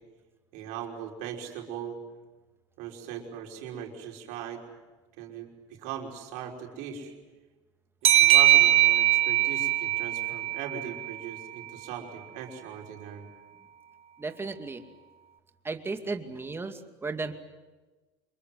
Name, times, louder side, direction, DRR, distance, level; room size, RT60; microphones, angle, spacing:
voice 1, 0.5-2.0 2.8-4.6 5.2-7.1 8.1-13.3, right 8 dB, 70° right, 1 dB, 5.6 m, -39 dB
sound 1, 8.0-11.4, right 14 dB, 45° right, 2.1 m, -22 dB
voice 2, 14.2-14.8 15.6-17.3, right 3 dB, 15° right, 6 dB, 2.4 m, -34 dB
27.0 x 22.5 x 8.0 m, 1.2 s
supercardioid pair, 95°, 14 cm